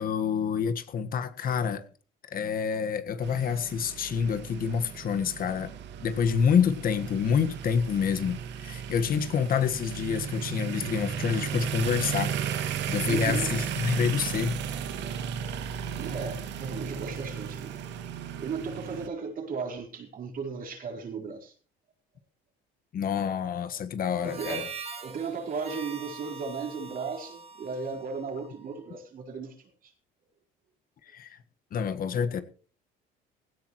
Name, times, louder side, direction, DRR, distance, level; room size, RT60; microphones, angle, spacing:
voice 1, 0.0-1.8 2.3-5.7 6.0-12.3 12.9-14.6 22.9-24.7 31.1-31.4 31.7-32.4, left 7 dB, 50° left, 1.6 m, -27 dB
sound 1, 3.2-19.1, right 8 dB, 70° right, 2.2 m, -35 dB
voice 2, 13.1-13.6 16.0-17.8 18.4-21.5 24.2-24.7 25.0-29.9, right 5 dB, 50° right, 4.6 m, -36 dB
Harmonica, 24.2-28.8, right 5 dB, 35° right, 2.9 m, -43 dB
17.0 x 16.0 x 3.2 m
cardioid pair, 105°, 19 cm